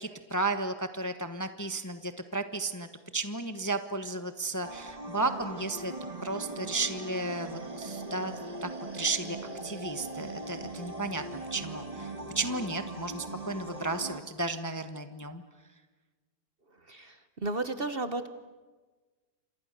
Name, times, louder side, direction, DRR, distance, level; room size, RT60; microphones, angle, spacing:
voice 1, 0.0-2.9 3.1-5.9 6.2-11.2 11.5-15.4, right 2 dB, 15° left, 8 dB, 1.0 m, -34 dB
sound 1, 4.6-14.2, right 2 dB, 25° right, 1.9 m, -40 dB
voice 2, 16.9-18.3, right 2 dB, 40° right, 10 dB, 1.2 m, -33 dB
29.0 x 27.0 x 6.7 m, 1.3 s
omnidirectional pair, 1.7 m